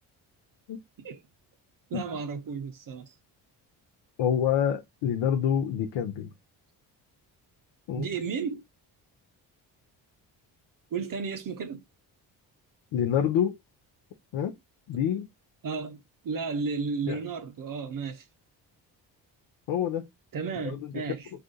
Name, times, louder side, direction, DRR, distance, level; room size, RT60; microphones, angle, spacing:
voice 1, 1.9-3.1 8.0-8.6 10.9-11.8 14.9-15.0 15.6-18.3 20.3-21.3, right 5 dB, 40° right, 0.6 m, -33 dB
voice 2, 4.2-6.3 7.9-8.1 12.9-13.6 14.3-14.5 14.9-15.3 17.1-17.2 19.7-20.0 20.6-20.8, left 9 dB, 60° left, 0.7 m, -26 dB
2.5 x 2.4 x 3.8 m
hypercardioid pair, 50°, 50 cm